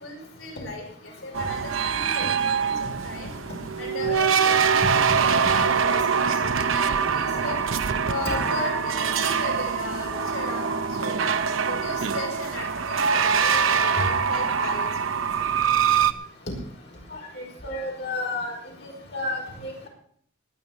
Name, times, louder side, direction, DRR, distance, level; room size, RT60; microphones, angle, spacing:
voice 1, 0.0-3.3 3.8-7.6 8.1-16.1 18.4-18.5, left 2 dB, 80° left, 0 dB, 6.0 m, -37 dB
sound 1, 1.3-16.1, right 6 dB, 80° right, 0.8 m, -24 dB
voice 2, 17.6-18.5 18.8-19.9, left 2 dB, 55° left, -1 dB, 5.2 m, -31 dB
19.0 x 6.6 x 7.1 m, 0.62 s
head